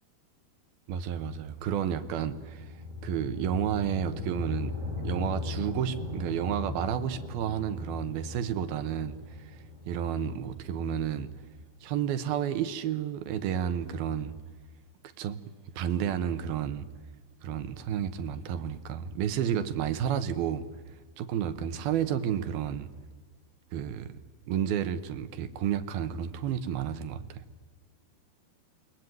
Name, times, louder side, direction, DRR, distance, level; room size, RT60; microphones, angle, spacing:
voice 1, 0.9-2.7 3.0-9.5 9.9-11.3 11.8-14.3 15.2-15.4 15.7-16.9 17.4-20.6 21.2-22.9 23.7-24.1 24.5-27.4, right 9 dB, 70° right, 12 dB, 2.7 m, -31 dB
sound 1, 1.5-11.7, left 3 dB, 5° right, 6.6 m, -39 dB
29.0 x 21.5 x 9.3 m, 1.4 s
omnidirectional pair, 5.0 m